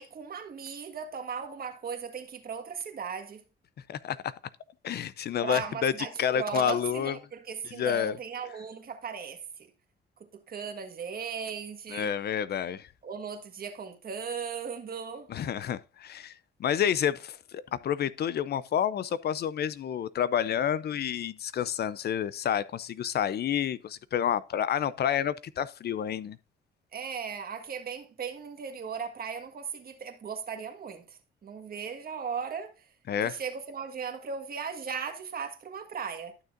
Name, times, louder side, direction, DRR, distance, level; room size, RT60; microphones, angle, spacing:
voice 1, 0.0-3.4 5.4-9.4 10.5-12.1 13.0-15.3 26.9-32.7 33.2-36.4, right 6 dB, 50° right, 1.5 m, -37 dB
voice 2, 3.9-4.3 4.8-7.2 7.6-8.2 11.9-12.9 15.3-16.3 16.6-26.4 33.1-33.4, left 9 dB, 55° left, 0.5 m, -29 dB
12.0 x 6.4 x 2.5 m
cardioid pair, 90°, 20 cm